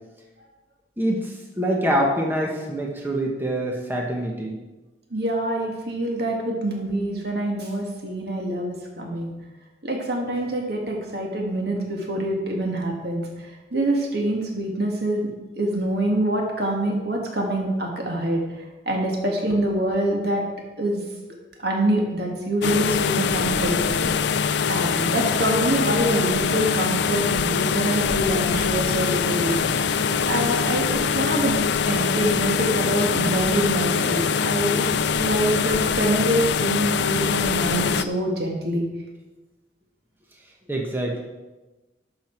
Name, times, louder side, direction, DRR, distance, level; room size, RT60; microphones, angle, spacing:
voice 1, 1.0-4.6 40.7-41.2, right 1 dB, 10° right, -1 dB, 1.2 m, -25 dB
voice 2, 5.1-9.3 9.8-13.2 13.7-20.4 20.8-21.0 21.6-24.1 24.7-29.7 30.3-30.9 31.1-31.6 31.8-38.8, right 1 dB, 60° right, 0 dB, 1.8 m, -25 dB
sound 1, 22.6-38.0, left 6 dB, 75° left, 0.4 m, -23 dB
12.0 x 7.0 x 4.5 m, 1.1 s
head